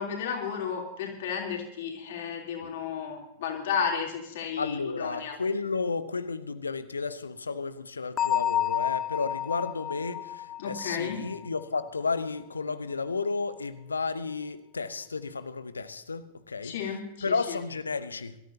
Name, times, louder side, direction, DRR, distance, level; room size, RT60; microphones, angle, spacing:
voice 1, 0.0-5.4 10.6-11.2 16.6-17.6, left 7 dB, 55° left, 3.4 m, -33 dB
voice 2, 4.6-16.7 17.2-18.4, left 4 dB, 75° left, 0.8 m, -32 dB
Bell, 8.2-11.8, left 11 dB, 30° left, 0.4 m, -30 dB
24.5 x 14.0 x 2.8 m
figure-of-eight pair, 90°, 0 cm